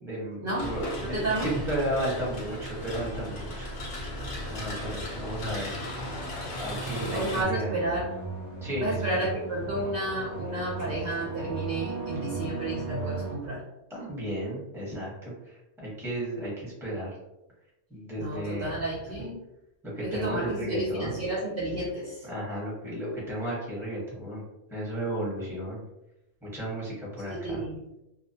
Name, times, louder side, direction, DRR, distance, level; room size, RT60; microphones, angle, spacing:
voice 1, 0.0-3.7 4.5-5.8 6.6-7.7 8.6-9.2 13.9-17.1 17.9-19.1 19.8-21.2 22.2-24.4 24.7-25.8 26.4-27.6, right 1 dB, ahead, -6 dB, 0.8 m, -34 dB
sound 1, 0.6-7.4, left 1 dB, 55° left, 0.8 m, -36 dB
voice 2, 1.0-1.5 7.1-8.1 8.8-13.6 18.2-19.4 20.0-22.2 27.3-27.8, right 1 dB, 60° right, -4 dB, 0.6 m, -31 dB
sound 2, 6.9-13.4, right 4 dB, 25° left, 0.4 m, -36 dB
2.4 x 2.1 x 2.7 m, 0.90 s
omnidirectional pair, 1.3 m